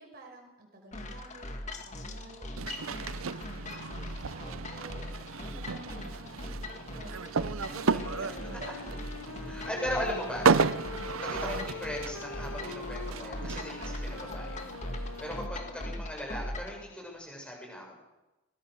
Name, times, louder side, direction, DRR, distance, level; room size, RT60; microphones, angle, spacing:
voice 1, 0.0-9.0 11.3-11.7 15.7-15.8, right 1 dB, 45° right, 1 dB, 5.5 m, -50 dB
sound 1, 0.9-16.8, left 1 dB, 35° left, 2.2 m, -40 dB
sound 2, 2.6-15.5, right 5 dB, 80° right, 0.6 m, -33 dB
Wind instrument woodwind instrument, 7.7-16.1, left 5 dB, 85° left, 1.0 m, -44 dB
voice 2, 9.5-10.8 11.2-14.6 15.2-18.0, equal, 5° left, -1 dB, 6.9 m, -38 dB
22.0 x 22.0 x 6.6 m, 1.0 s
head